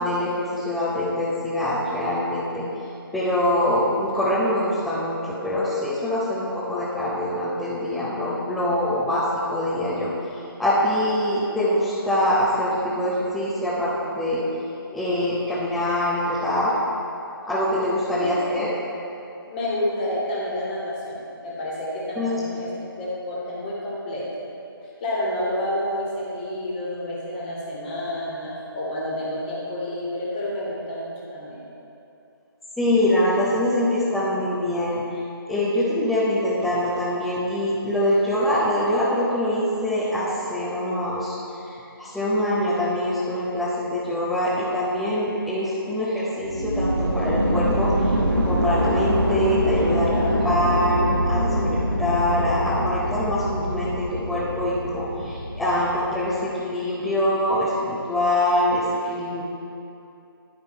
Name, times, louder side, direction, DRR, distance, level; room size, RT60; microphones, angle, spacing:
voice 1, 0.0-2.6 3.1-9.2 9.5-10.1 10.6-14.4 14.9-16.7 17.5-18.7 22.2-22.4 32.8-35.0 35.5-41.4 41.6-48.1 48.4-59.4, left 1 dB, ahead, -13 dB, 0.6 m, -24 dB
voice 2, 18.2-18.9 19.5-24.2 25.0-31.6 49.9-50.9, left 1 dB, 25° left, -6 dB, 1.7 m, -30 dB
sound 1, 46.4-56.4, equal, 60° right, 1.4 m, -24 dB
11.0 x 5.2 x 4.4 m, 2.7 s
figure-of-eight pair, 150°, 13 cm